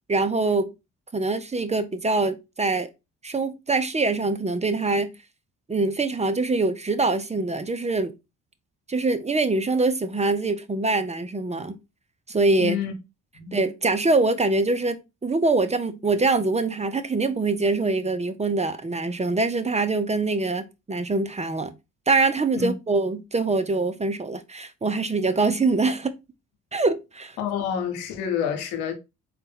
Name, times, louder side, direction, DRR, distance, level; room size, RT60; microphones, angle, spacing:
voice 1, 0.1-0.7 1.1-2.9 3.2-5.1 5.7-8.1 8.9-11.8 12.3-12.8 13.5-21.7 22.1-26.1 26.7-27.4, right 3 dB, 20° right, 0.7 m, -24 dB
voice 2, 12.6-12.9 13.3-13.6 22.5-22.7 27.4-28.9, left 8 dB, 85° left, 1.0 m, -28 dB
3.9 x 2.5 x 4.0 m
hypercardioid pair, 50°, 37 cm